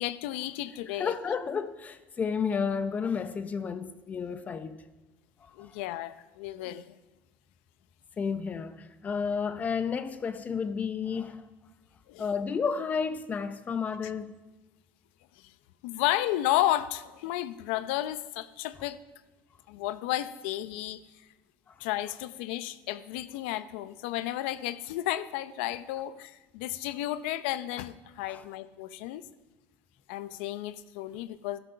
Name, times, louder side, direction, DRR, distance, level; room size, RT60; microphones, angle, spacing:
voice 1, 0.0-1.1 5.6-6.9 12.1-12.3 15.8-19.0 19.7-21.0 21.8-29.2 30.1-31.6, left 14 dB, 80° left, 0.7 m, -32 dB
voice 2, 1.0-4.8 5.4-5.7 8.2-11.4 12.2-14.3 21.7-21.8 28.3-28.4, left 6 dB, 25° left, 0.7 m, -32 dB
12.5 x 11.0 x 5.7 m
supercardioid pair, 125°, 6 cm